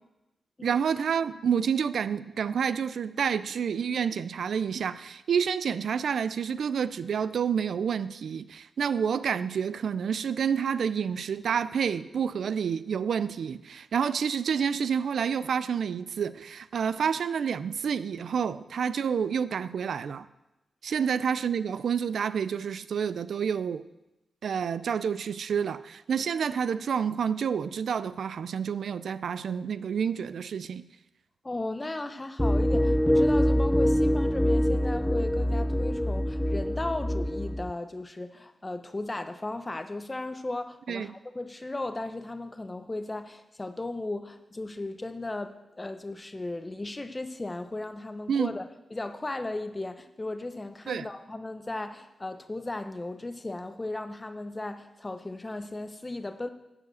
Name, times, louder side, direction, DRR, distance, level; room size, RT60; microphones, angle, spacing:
voice 1, 0.6-20.3 20.8-23.8 24.4-30.8 40.9-41.1 48.3-48.5 50.9-51.1, right 7 dB, 75° right, 0.4 m, -29 dB
voice 2, 31.4-56.5, left 2 dB, 25° left, 0.8 m, -36 dB
sound 1, 32.4-37.7, equal, 5° left, 0.4 m, -24 dB
11.0 x 4.9 x 8.1 m
cardioid pair, 75°, 0 cm